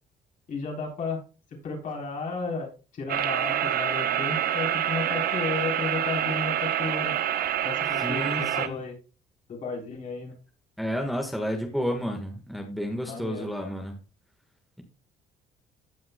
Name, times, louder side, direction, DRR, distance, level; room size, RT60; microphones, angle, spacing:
voice 1, 0.5-1.2 1.5-7.1 7.6-8.3 8.5-9.0 9.5-10.4 13.0-13.5, left 4 dB, 50° left, 0 dB, 3.6 m, -33 dB
sound 1, 3.1-8.7, right 10 dB, 65° right, 0.8 m, -27 dB
voice 2, 8.0-8.8 10.8-14.0, equal, ahead, 3 dB, 1.4 m, -31 dB
15.5 x 5.7 x 2.2 m, 0.33 s
cardioid pair, 110°, 17 cm